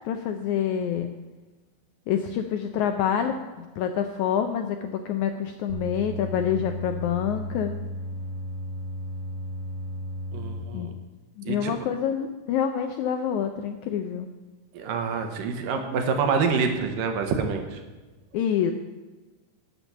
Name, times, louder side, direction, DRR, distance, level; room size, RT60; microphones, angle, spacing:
voice 1, 0.0-1.1 2.1-7.7 10.7-10.9 11.4-14.3 18.3-18.7, left 8 dB, 80° left, 6 dB, 1.7 m, -27 dB
sound 1, 5.7-10.6, equal, 45° right, 1.2 m, -34 dB
voice 2, 10.3-10.9 11.5-11.7 14.7-17.8, right 5 dB, 75° right, 5 dB, 2.7 m, -27 dB
12.5 x 6.8 x 7.2 m, 1.2 s
omnidirectional pair, 4.0 m